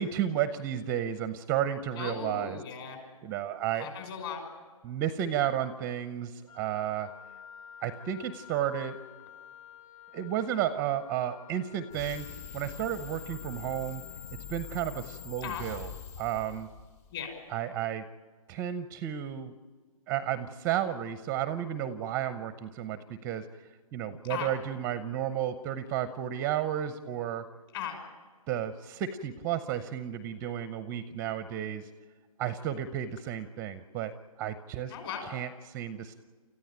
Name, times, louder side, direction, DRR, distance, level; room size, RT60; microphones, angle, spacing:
voice 1, 0.0-2.6 3.2-3.9 4.8-7.1 7.8-9.0 10.1-12.2 12.5-14.0 14.5-15.9 16.2-16.7 17.5-18.0 18.5-19.5 20.1-23.5 23.9-27.4 28.5-31.9 32.4-34.1 34.4-34.9 35.3-36.2, right 10 dB, 15° right, 13 dB, 0.6 m, -32 dB
voice 2, 2.0-3.0 3.7-4.4 15.4-15.6 17.1-17.3 24.2-24.5 27.7-28.0 34.9-35.3, left 7 dB, 40° left, 5 dB, 5.9 m, -37 dB
Wind instrument woodwind instrument, 6.5-15.3, left 9 dB, 65° left, 7.0 m, -52 dB
sound 1, 11.9-17.3, left 8 dB, 25° left, 0.6 m, -44 dB
29.5 x 14.5 x 8.9 m, 1.5 s
figure-of-eight pair, 140°, 19 cm